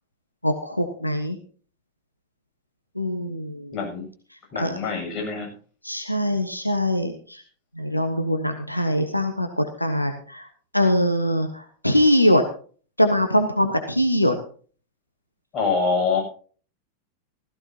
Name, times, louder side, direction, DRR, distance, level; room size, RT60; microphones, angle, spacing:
voice 1, 0.4-1.4 2.9-3.8 4.5-4.9 5.8-7.4 7.7-10.5 10.7-12.4 13.0-14.3, left 1 dB, 85° left, 6 dB, 1.4 m, -22 dB
voice 2, 3.7-4.0 4.5-5.5 15.5-16.2, left 4 dB, 30° left, 1 dB, 7.8 m, -25 dB
16.0 x 16.0 x 2.9 m, 0.42 s
figure-of-eight pair, 90°, 0 cm